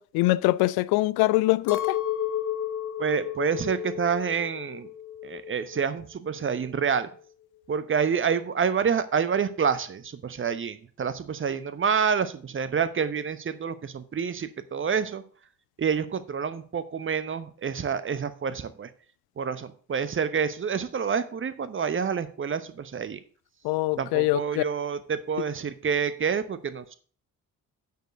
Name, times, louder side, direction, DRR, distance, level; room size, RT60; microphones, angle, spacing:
voice 1, 0.0-2.0 23.6-24.6, left 20 dB, 50° left, 0.5 m, -23 dB
Chink clink, 1.7-6.0 6.3-7.1, left 10 dB, 80° left, 0.8 m, -33 dB
voice 2, 3.0-4.9 5.2-7.1 7.7-15.2 15.8-18.9 19.4-23.2 24.0-27.0, right 6 dB, 25° right, 0.9 m, -28 dB
9.3 x 4.6 x 6.2 m
figure-of-eight pair, 45°, 48 cm